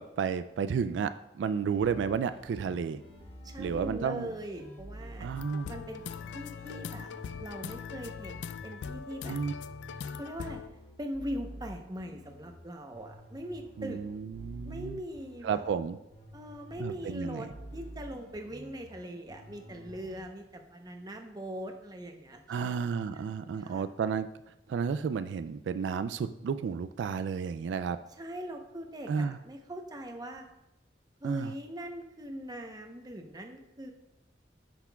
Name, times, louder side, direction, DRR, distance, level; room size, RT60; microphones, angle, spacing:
voice 1, 0.0-3.0 3.6-4.3 5.2-5.7 9.3-9.5 13.8-15.0 15.4-16.0 16.8-17.5 22.5-24.3 24.7-28.0 29.1-29.4 31.2-31.5, right 6 dB, 90° right, 12 dB, 0.3 m, -32 dB
sound 1, 1.7-12.5 12.9-15.7 16.1-20.2, equal, 50° left, 2.4 m, -49 dB
voice 2, 3.4-5.3 5.7-6.0 6.3-7.1 7.4-9.4 10.1-10.6 11.0-14.0 14.6-15.6 16.3-22.7 23.1-23.2 23.6-23.8 28.2-30.5 31.2-33.9, equal, 25° right, 4 dB, 0.8 m, -41 dB
sound 2, 5.4-10.7, left 6 dB, 80° left, 0.3 m, -41 dB
10.0 x 5.9 x 2.3 m, 0.90 s
head